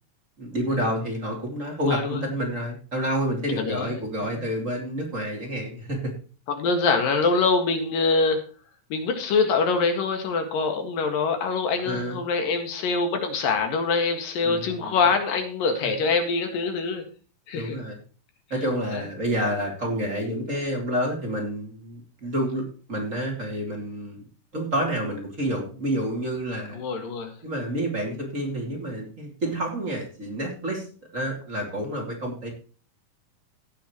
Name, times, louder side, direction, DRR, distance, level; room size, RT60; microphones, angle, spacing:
voice 1, 0.4-6.1 11.8-12.2 14.4-14.9 17.5-18.0 18.5-24.2 24.5-26.8 27.4-30.9 31.1-32.5, right 1 dB, 25° right, 0 dB, 3.0 m, -29 dB
voice 2, 1.8-2.2 3.6-3.9 6.5-8.4 8.9-17.1 17.5-17.8 18.9-19.0 26.7-27.3, left 4 dB, 80° left, 6 dB, 3.6 m, -24 dB
16.5 x 8.5 x 3.1 m, 0.38 s
omnidirectional pair, 3.9 m